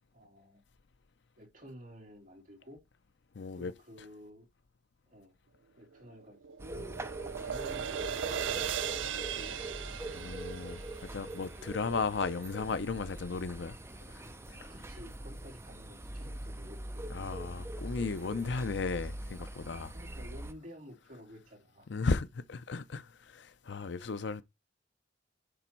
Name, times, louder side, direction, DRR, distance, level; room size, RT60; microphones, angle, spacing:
voice 1, 0.1-0.6 1.4-2.8 3.5-4.5 5.1-5.3 5.8-7.0 7.4-9.6 11.7-11.8 14.7-17.2 19.9-21.9, equal, 45° right, 3.2 m, -52 dB
voice 2, 3.3-3.7 10.1-13.8 14.1-14.7 17.1-19.9 21.9-24.4, left 4 dB, 65° left, 0.6 m, -35 dB
sound 1, 5.9-12.3, right 8 dB, 80° right, 0.5 m, -38 dB
sound 2, 6.6-20.5, right 1 dB, 15° right, 0.7 m, -43 dB
10.0 x 3.5 x 4.5 m
head